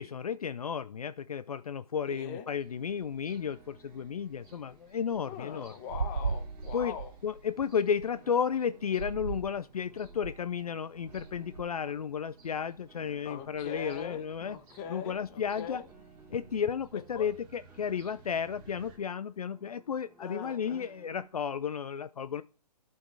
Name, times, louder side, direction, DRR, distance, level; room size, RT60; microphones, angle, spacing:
voice 1, 0.0-5.7 6.7-6.9 7.2-14.6 14.9-15.8 16.3-22.4, left 7 dB, 65° left, 0.4 m, -33 dB
voice 2, 2.1-2.5 5.3-7.1 13.2-15.9 16.9-17.3 20.2-20.9, left 7 dB, 20° left, 1.0 m, -42 dB
Piano, 2.1-21.3, right 3 dB, 10° right, 2.4 m, -60 dB
sound 1, 2.5-19.0, right 5 dB, 25° right, 1.7 m, -60 dB
sound 2, 5.9-8.1 8.9-9.6 9.9-10.5 11.0-11.6, right 4 dB, 85° right, 0.7 m, -36 dB
11.5 x 4.5 x 4.7 m
figure-of-eight pair, 130°, 21 cm